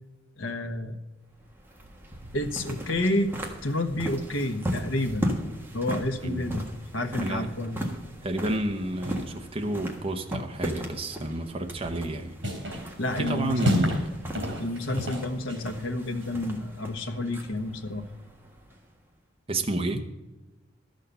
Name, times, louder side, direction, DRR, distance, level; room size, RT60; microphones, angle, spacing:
voice 1, 0.4-1.0 2.3-3.3 3.6-5.3 5.7-6.6 6.9-7.9 13.0-14.0 14.6-18.0, left 1 dB, 90° left, 7 dB, 1.2 m, -30 dB
sound 1, 1.3-19.0, equal, 10° right, 1.4 m, -37 dB
voice 2, 7.2-7.5 8.2-12.4 13.2-14.0 19.5-20.0, right 1 dB, 30° right, 4 dB, 0.9 m, -30 dB
sound 2, 11.8-12.1 12.4-12.9 13.2-14.1 14.3-15.7, equal, 65° right, 3.2 m, -29 dB
13.0 x 6.5 x 6.8 m, 1.1 s
head